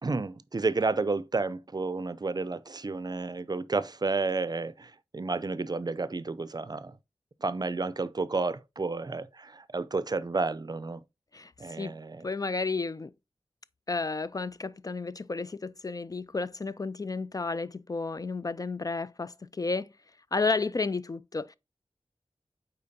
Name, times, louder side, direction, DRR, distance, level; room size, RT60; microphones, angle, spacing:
voice 1, 0.0-7.0 7.4-11.0 11.6-12.2, right 3 dB, 40° right, 0.5 m, -31 dB
voice 2, 12.2-13.1 13.9-19.9 20.3-21.6, left 3 dB, 35° left, 0.3 m, -32 dB
8.6 x 4.5 x 2.7 m
wide cardioid pair, 85°, 11 cm